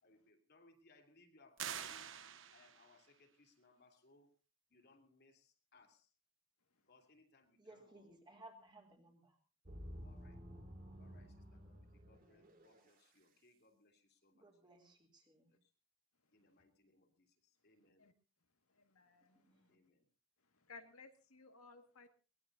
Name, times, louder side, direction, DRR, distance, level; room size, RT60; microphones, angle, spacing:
voice 1, 0.0-2.1 2.5-4.3 4.7-6.1 6.9-8.0 10.0-10.4 11.0-14.5 15.5-15.7 16.3-18.1 19.5-20.0, left 3 dB, 50° left, 3 dB, 2.9 m, -69 dB
sound 1, 1.6-3.0, right 9 dB, 60° right, 1.0 m, -46 dB
voice 2, 7.6-9.4 14.3-15.5 19.3-19.8, right 2 dB, 20° right, 1 dB, 3.0 m, -61 dB
sound 2, 9.7-12.9, equal, 40° right, 2.3 m, -53 dB
voice 3, 18.7-19.8 20.6-22.1, left 4 dB, 80° left, 5 dB, 1.9 m, -59 dB
22.5 x 19.0 x 2.7 m, 0.34 s
head